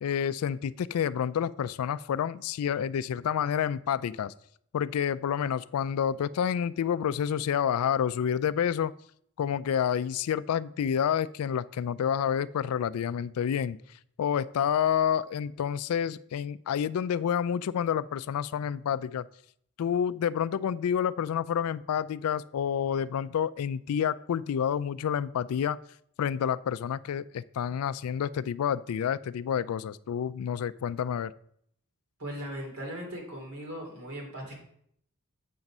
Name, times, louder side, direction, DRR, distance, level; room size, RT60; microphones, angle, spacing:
voice 1, 0.0-4.3 4.7-8.9 9.4-13.8 14.2-19.3 19.8-25.8 26.2-31.3, left 8 dB, 80° left, 18 dB, 0.3 m, -29 dB
voice 2, 32.2-34.5, equal, 90° right, -1 dB, 2.9 m, -38 dB
7.6 x 5.3 x 6.0 m, 0.68 s
head